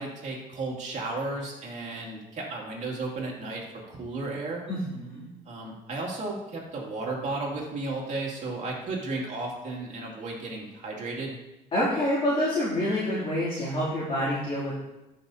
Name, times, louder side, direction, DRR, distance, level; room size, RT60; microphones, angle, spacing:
voice 1, 0.0-4.7 5.5-11.3, right 2 dB, 45° right, -2 dB, 2.5 m, -34 dB
voice 2, 4.7-5.3 11.7-14.8, left 1 dB, 35° left, -10 dB, 2.8 m, -27 dB
12.5 x 5.6 x 2.8 m, 0.97 s
cardioid pair, 110°, 17 cm